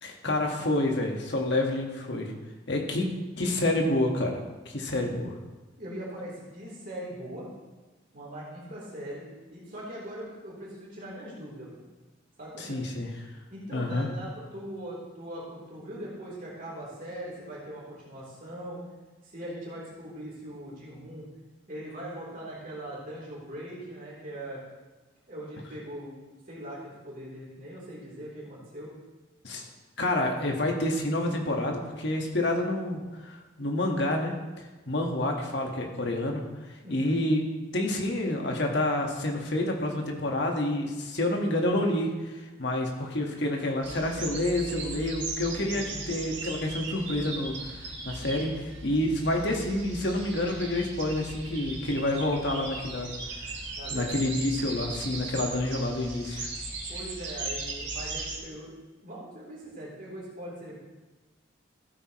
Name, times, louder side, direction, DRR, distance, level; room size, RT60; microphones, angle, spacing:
voice 1, 0.0-2.3 2.7-3.1 3.4-4.4 4.6-5.3 12.6-13.1 13.7-14.1 29.4-29.7 30.0-34.3 34.9-36.4 36.9-37.4 37.7-53.1 53.9-56.5, left 1 dB, 55° left, 1 dB, 1.6 m, -28 dB
voice 2, 5.8-7.5 8.1-9.2 9.5-11.7 12.4-12.8 13.5-18.8 19.2-21.3 21.7-24.6 25.3-28.9 36.8-37.2 45.6-46.0 53.8-54.3 56.9-60.8, right 1 dB, 40° right, -6 dB, 3.5 m, -41 dB
sound 1, 43.8-58.4, right 3 dB, 65° right, 3.7 m, -38 dB
15.0 x 8.9 x 3.1 m, 1.2 s
head